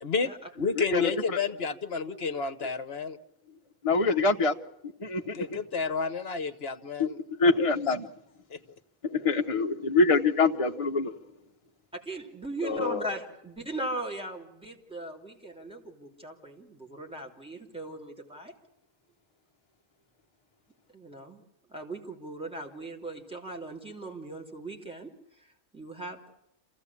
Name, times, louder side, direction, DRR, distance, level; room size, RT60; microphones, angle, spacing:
voice 1, 0.0-3.2 5.3-7.2 8.5-8.6, left 4 dB, 50° left, 1.3 m, -31 dB
voice 2, 0.8-1.1 2.6-2.7 3.8-4.5 4.8-5.5 7.0-7.1 7.4-8.1 9.0-11.1 12.6-13.1, left 3 dB, 25° left, 1.1 m, -25 dB
voice 3, 11.9-18.5 20.9-21.4 21.7-26.3, right 1 dB, 5° right, 3.2 m, -39 dB
27.0 x 16.0 x 8.5 m
omnidirectional pair, 1.4 m